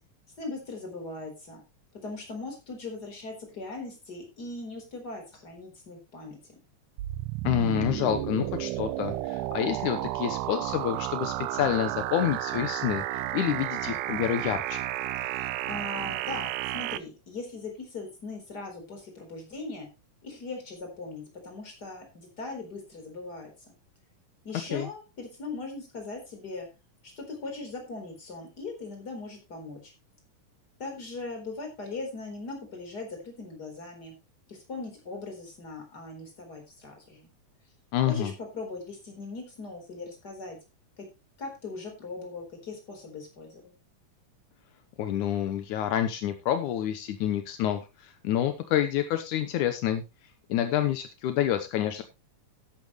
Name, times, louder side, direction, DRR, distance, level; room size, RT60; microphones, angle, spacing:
voice 1, 0.4-1.6 2.0-6.5 15.2-19.9 20.2-23.8 24.4-26.7 27.0-29.9 30.8-34.1 34.5-37.3 38.1-40.6 41.0-41.1 41.4-43.7, left 3 dB, 30° left, 3 dB, 4.6 m, -40 dB
sound 1, 7.0-17.0, right 14 dB, 85° right, 2.2 m, -32 dB
voice 2, 7.4-14.9 24.7-24.9 37.9-38.3 45.0-50.0 50.5-52.0, left 11 dB, 80° left, 8 dB, 2.4 m, -28 dB
13.0 x 10.5 x 3.1 m, 0.25 s
omnidirectional pair, 3.5 m